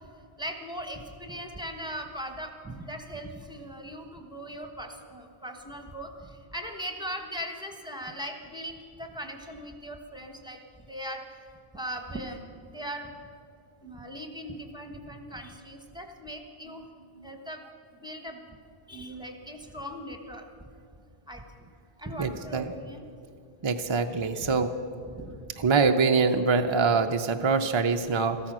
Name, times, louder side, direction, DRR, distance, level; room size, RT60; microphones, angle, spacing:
voice 1, 0.4-10.6 10.9-11.2 11.7-12.4 12.7-13.1 13.8-16.9 17.2-17.7 18.0-18.6 18.9-20.5 21.3-21.7 22.0-23.1 24.2-24.6 25.2-25.7, equal, 5° right, 4 dB, 1.1 m, -39 dB
voice 2, 22.2-22.7 23.6-24.7 25.6-28.4, right 4 dB, 40° right, 6 dB, 0.4 m, -24 dB
14.0 x 13.0 x 6.1 m, 2.4 s
omnidirectional pair, 1.0 m